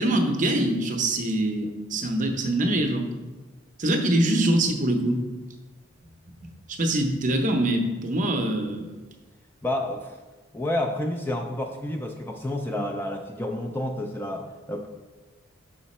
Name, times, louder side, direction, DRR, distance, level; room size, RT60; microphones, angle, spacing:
voice 1, 0.0-3.1 3.8-5.2 6.7-8.9, right 1 dB, 40° right, 5 dB, 0.7 m, -24 dB
voice 2, 9.6-10.2 10.5-14.9, left 1 dB, 10° left, 3 dB, 0.3 m, -30 dB
5.6 x 5.0 x 4.2 m, 1.2 s
head